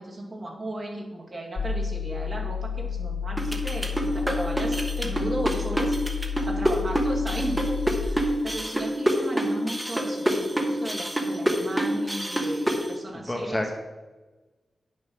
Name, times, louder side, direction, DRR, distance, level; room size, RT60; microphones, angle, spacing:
voice 1, 0.0-6.0 6.5-7.6 8.0-8.1 8.4-13.5, right 1 dB, 35° right, -2 dB, 2.3 m, -35 dB
sound 1, 1.6-8.1, left 6 dB, 65° left, 0.8 m, -31 dB
sound 2, 3.4-12.9, right 1 dB, 5° right, 1.2 m, -26 dB
voice 2, 13.1-13.8, left 1 dB, 10° left, 3 dB, 0.8 m, -30 dB
9.7 x 6.5 x 6.2 m, 1.2 s
wide cardioid pair, 160°, 0 cm